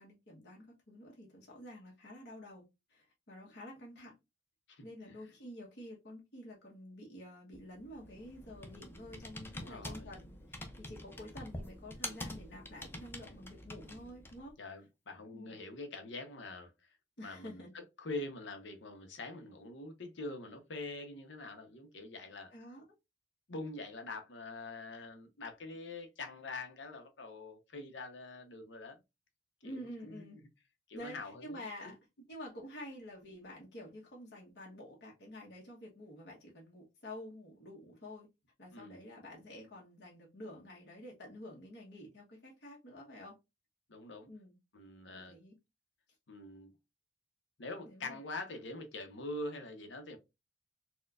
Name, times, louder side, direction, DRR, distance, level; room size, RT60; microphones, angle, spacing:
voice 1, 0.0-4.1 4.8-14.5 15.3-15.5 17.2-17.7 22.5-22.8 29.6-30.4 30.9-32.0 32.3-38.3 38.6-43.3 44.3-44.6 45.1-45.5 47.9-48.2, left 1 dB, 60° left, 1.1 m, -49 dB
voice 2, 4.7-5.2 9.6-10.1 14.6-17.0 17.2-22.5 23.5-29.0 29.6-30.3 30.9-31.9 38.7-39.0 43.9-44.3 44.7-45.4 46.3-46.7 47.6-50.2, left 2 dB, 85° left, 0.8 m, -45 dB
Computer keyboard, 7.5-14.5, left 1 dB, 10° left, 0.5 m, -46 dB
4.2 x 2.2 x 2.4 m
head